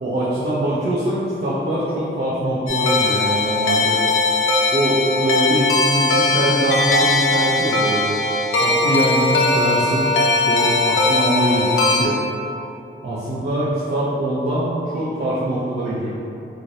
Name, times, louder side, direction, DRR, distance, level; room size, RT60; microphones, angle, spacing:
voice 1, 0.0-4.0 4.7-8.2 8.6-12.2 13.0-16.1, right 1 dB, 50° right, -9 dB, 0.6 m, -23 dB
sound 1, 2.7-12.0, left 2 dB, 80° left, 0.4 m, -19 dB
3.1 x 2.7 x 2.6 m, 2.7 s
wide cardioid pair, 95°, 21 cm